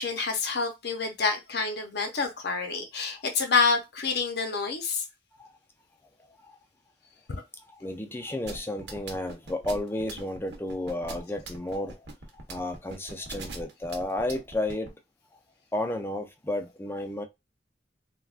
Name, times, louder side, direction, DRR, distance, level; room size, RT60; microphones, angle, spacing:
voice 1, 0.0-5.1 7.3-7.4 7.8-7.9, left 4 dB, 65° left, 0.7 m, -28 dB
voice 2, 7.8-12.0 12.5-14.9 15.7-17.2, left 1 dB, 15° left, 0.5 m, -32 dB
sound 1, 8.5-14.9, right 3 dB, 70° right, 0.9 m, -41 dB
3.4 x 2.3 x 2.4 m
head